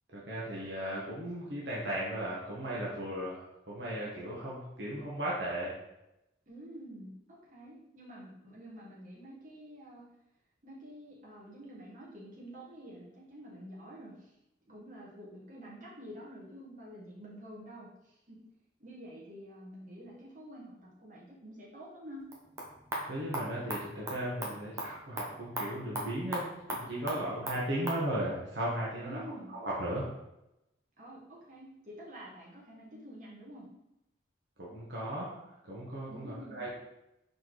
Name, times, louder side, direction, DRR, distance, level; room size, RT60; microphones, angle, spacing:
voice 1, 0.1-5.8 23.1-29.2 29.5-30.1 34.6-36.7, right 1 dB, 65° right, -6 dB, 1.1 m, -36 dB
voice 2, 6.5-10.0 10.6-14.3 14.7-18.4 18.8-22.2 29.0-29.5 31.0-33.7 36.1-36.7, equal, 40° right, -5 dB, 1.4 m, -48 dB
sound 1, 22.2-28.0, right 1 dB, 15° right, 0.7 m, -40 dB
4.4 x 3.9 x 3.1 m, 0.88 s
head